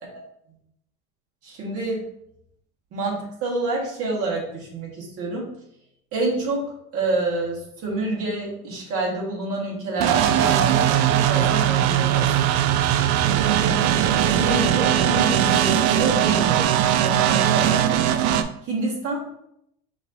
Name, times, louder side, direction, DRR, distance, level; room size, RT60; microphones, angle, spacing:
voice 1, 1.4-2.0 2.9-5.5 6.1-6.6 6.9-12.3 13.3-13.8 14.3-16.6 17.0-19.2, right 2 dB, 45° right, -3 dB, 1.8 m, -28 dB
sound 1, 10.0-18.4, right 11 dB, 60° right, 0.4 m, -20 dB
5.9 x 2.9 x 2.7 m, 0.75 s
cardioid pair, 145°, 33 cm